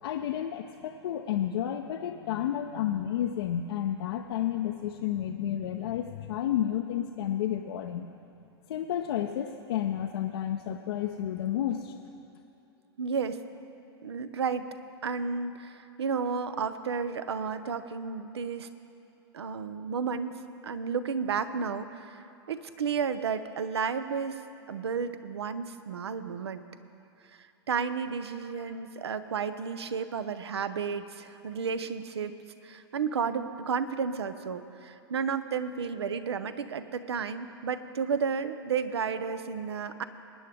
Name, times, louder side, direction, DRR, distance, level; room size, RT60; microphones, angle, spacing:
voice 1, 0.0-8.1 8.7-11.9, left 10 dB, 65° left, 4 dB, 0.6 m, -31 dB
voice 2, 13.0-13.4 14.0-14.7 15.0-18.7 19.3-24.4 24.7-26.6 27.7-32.3 32.6-40.0, right 6 dB, 80° right, 11 dB, 0.7 m, -32 dB
22.0 x 9.4 x 3.4 m, 2.9 s
hypercardioid pair, 100°, 14 cm